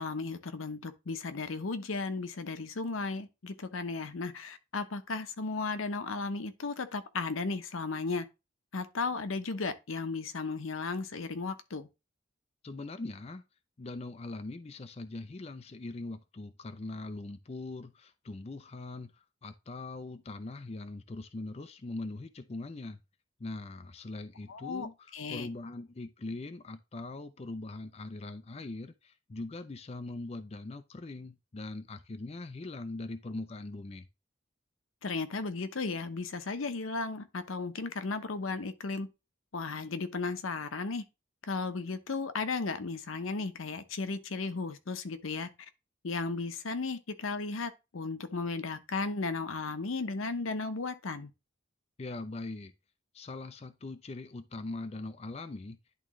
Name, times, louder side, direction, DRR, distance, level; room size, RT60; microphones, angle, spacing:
voice 1, 0.0-8.3 8.7-11.9 24.5-24.9 25.1-25.5 35.0-39.1 39.5-41.0 41.4-45.5 46.0-51.3, left 3 dB, 85° left, 0.8 m, -35 dB
voice 2, 12.6-13.4 13.8-23.0 23.4-34.1 52.0-52.7 53.1-55.8, left 2 dB, 30° left, 0.4 m, -41 dB
10.5 x 3.6 x 3.1 m
head